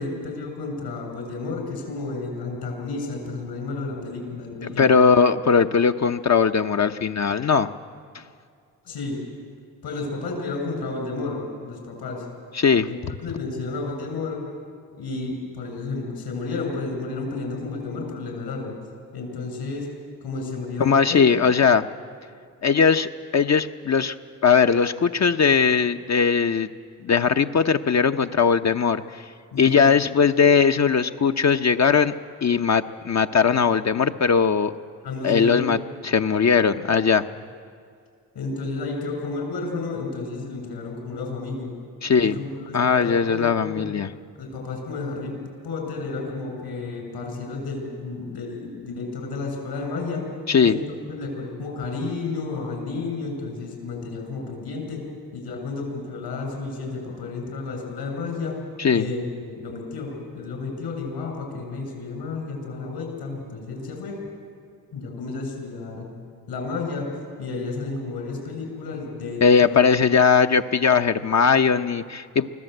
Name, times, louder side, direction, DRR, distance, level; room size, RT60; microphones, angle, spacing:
voice 1, 0.0-5.0 8.9-9.2 9.8-12.3 12.9-14.5 14.9-18.7 19.1-19.9 20.2-21.2 29.5-29.9 35.0-35.7 38.3-41.7 42.2-43.8 44.4-45.3 45.6-50.3 50.6-50.8 51.1-55.1 55.3-58.6 58.9-64.2 64.9-66.1 66.5-67.1 67.4-69.8, left 3 dB, 70° left, 2 dB, 7.4 m, -31 dB
voice 2, 4.6-7.7 8.1-8.2 12.5-13.1 20.8-21.8 22.6-24.2 24.4-26.7 27.0-29.2 29.6-32.1 32.4-34.7 35.2-35.8 36.0-37.2 42.0-42.4 42.7-44.1 50.5-50.8 58.8-59.0 69.4-72.5, left 6 dB, 40° left, 7 dB, 0.9 m, -19 dB
24.5 x 16.0 x 8.0 m, 2.2 s
supercardioid pair, 50°, 40 cm